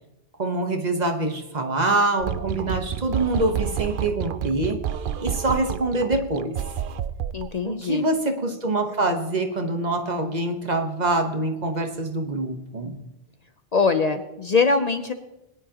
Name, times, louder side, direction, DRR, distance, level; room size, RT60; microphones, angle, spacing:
voice 1, 0.4-4.8 5.2-6.6 7.6-13.0, right 2 dB, 45° right, 5 dB, 1.2 m, -25 dB
sound 1, 2.2-7.5, right 9 dB, 65° right, 0.7 m, -30 dB
voice 2, 7.3-8.0 13.7-15.1, left 4 dB, 45° left, 9 dB, 0.6 m, -22 dB
21.0 x 10.5 x 2.9 m, 0.96 s
omnidirectional pair, 1.0 m